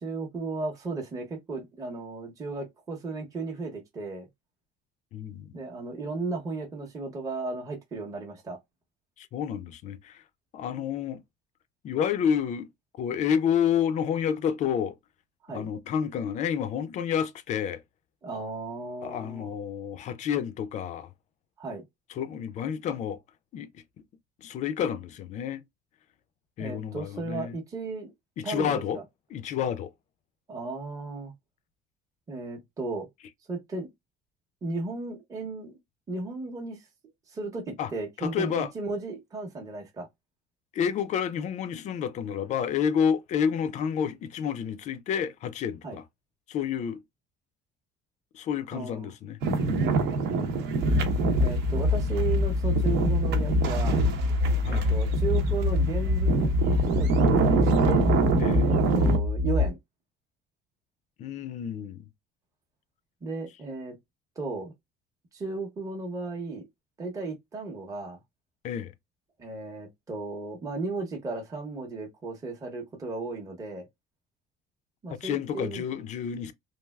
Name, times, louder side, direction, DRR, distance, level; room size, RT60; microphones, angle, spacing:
voice 1, 0.0-4.3 5.5-8.6 15.5-15.7 18.2-19.5 21.6-21.8 26.6-28.1 28.4-29.0 30.5-31.3 32.3-33.1 33.5-33.9 34.6-35.8 36.1-36.8 37.3-40.1 45.8-46.0 48.7-49.1 51.4-54.0 54.7-58.1 58.6-59.8 63.2-64.0 64.4-64.7 65.3-66.6 67.0-68.2 69.4-73.9 75.0-75.8, right 3 dB, 20° right, 0.8 m, -35 dB
voice 2, 5.1-5.6 9.2-10.2 10.5-11.2 11.8-12.7 13.0-15.0 15.5-17.8 19.0-21.1 22.1-23.2 23.5-23.8 24.4-25.6 26.6-27.6 28.4-29.0 29.3-29.9 37.8-37.9 38.2-38.7 40.7-46.0 46.5-47.0 48.3-50.0 54.6-54.9 58.4-58.7 61.2-62.1 68.6-68.9 75.2-76.5, left 8 dB, 40° left, 0.4 m, -29 dB
sound 1, 49.4-59.2, right 4 dB, 65° right, 0.8 m, -27 dB
sound 2, 50.8-59.7, left 3 dB, 45° right, 0.4 m, -25 dB
3.3 x 2.3 x 2.2 m
cardioid pair, 170°, 19 cm